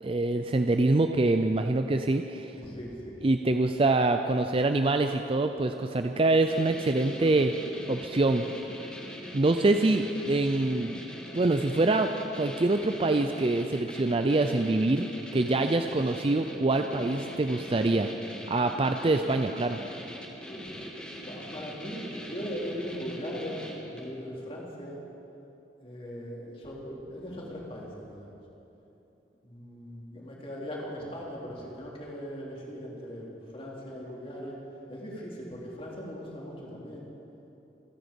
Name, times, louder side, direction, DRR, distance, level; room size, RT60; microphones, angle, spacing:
voice 1, 0.0-2.5 3.2-7.5 7.9-8.4 9.3-11.0 11.3-18.1 18.5-19.8, right 2 dB, 30° right, 6 dB, 0.5 m, -25 dB
voice 2, 2.5-3.2 20.5-20.9 21.1-25.0 25.8-28.3 29.4-34.6 34.9-37.1, equal, 30° left, -3 dB, 3.2 m, -39 dB
sound 1, 6.5-24.2, equal, 5° left, 1.7 m, -42 dB
27.0 x 10.0 x 5.3 m, 3.0 s
head